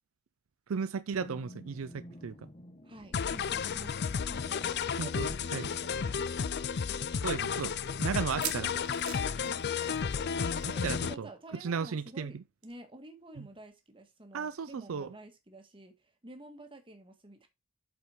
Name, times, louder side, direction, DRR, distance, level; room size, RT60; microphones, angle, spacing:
voice 1, 0.7-2.5 5.0-5.7 7.2-7.7 8.0-8.7 10.6-11.3 11.6-12.4 13.4-13.5 14.3-15.1, right 6 dB, 70° right, 0.5 m, -35 dB
sound 1, 1.2-6.9, left 1 dB, 30° left, 1.1 m, -54 dB
voice 2, 2.8-4.7 5.0-6.3 9.1-9.6 10.0-17.5, right 1 dB, 25° right, 1.7 m, -50 dB
sound 2, 3.1-11.1, left 6 dB, 50° left, 0.5 m, -32 dB
sound 3, 8.2-10.3 10.6-10.8 11.1-11.2 12.6-12.7, right 10 dB, 90° right, 1.6 m, -41 dB
7.8 x 5.3 x 4.6 m
head